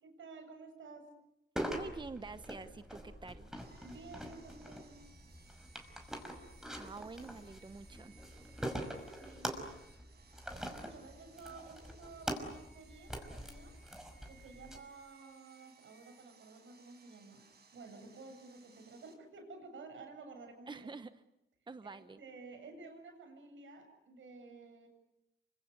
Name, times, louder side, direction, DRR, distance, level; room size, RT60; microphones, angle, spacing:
voice 1, 0.0-1.1 3.8-5.0 9.1-9.5 10.5-13.8 14.3-17.4 17.7-20.9 21.8-24.9, right 3 dB, 75° right, 6 dB, 7.8 m, -52 dB
sound 1, 1.6-14.8, equal, 5° right, 5.6 m, -44 dB
voice 2, 1.7-3.5 6.8-8.1 20.7-21.1 21.7-22.2, right 3 dB, 20° right, 11 dB, 1.0 m, -47 dB
Sawing, 3.6-19.1, right 5 dB, 55° right, 6.0 m, -64 dB
28.5 x 25.5 x 8.1 m, 0.88 s
cardioid pair, 95°, 20 cm